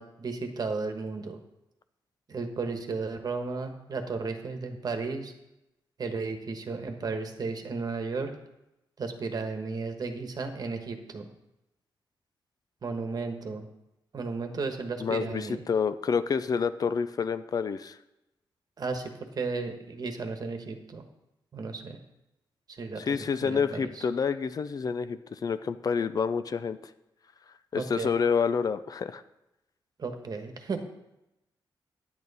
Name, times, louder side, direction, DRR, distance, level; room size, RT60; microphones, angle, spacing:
voice 1, 0.0-1.4 2.3-5.3 6.0-8.3 9.0-11.3 12.8-13.6 14.1-15.7 18.8-21.0 21.5-22.0 22.7-23.0 23.4-24.0 27.7-28.2 30.0-30.8, right 4 dB, 50° right, 6 dB, 1.3 m, -34 dB
voice 2, 15.0-18.0 23.0-26.8 27.7-29.2, left 6 dB, 45° left, 12 dB, 0.4 m, -28 dB
10.5 x 8.8 x 4.1 m, 0.91 s
wide cardioid pair, 120°, 9 cm